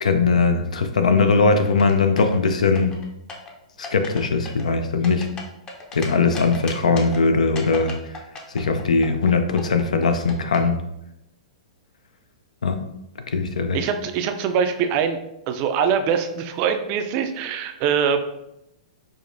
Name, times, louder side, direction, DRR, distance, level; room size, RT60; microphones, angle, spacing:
voice 1, 0.0-2.9 3.8-5.3 5.9-7.9 8.5-10.8 12.6-12.8 13.3-13.8, left 4 dB, 90° left, 7 dB, 0.4 m, -20 dB
sound 1, 1.6-2.4 2.8-3.5 3.8-4.2 4.5-6.1 6.3-7.2 7.6-10.6, left 4 dB, 20° left, 0.5 m, -36 dB
voice 2, 13.7-15.2 15.5-18.2, right 7 dB, 40° right, 7 dB, 0.3 m, -23 dB
4.7 x 2.1 x 2.5 m, 0.85 s
hypercardioid pair, 130°, 4 cm